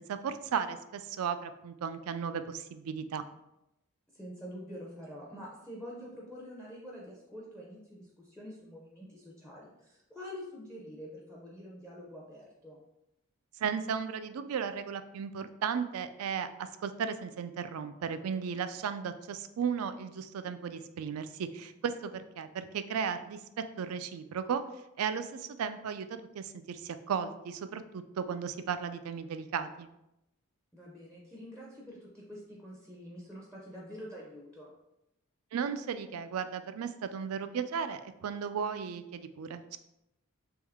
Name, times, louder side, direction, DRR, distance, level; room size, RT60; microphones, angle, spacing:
voice 1, 0.0-3.2 13.6-23.4 23.8-24.6 25.0-29.9 35.5-39.8, right 7 dB, 85° right, 11 dB, 0.3 m, -35 dB
voice 2, 4.1-12.8 30.7-34.7, equal, 5° left, -4 dB, 0.6 m, -46 dB
3.5 x 3.1 x 3.4 m, 0.86 s
head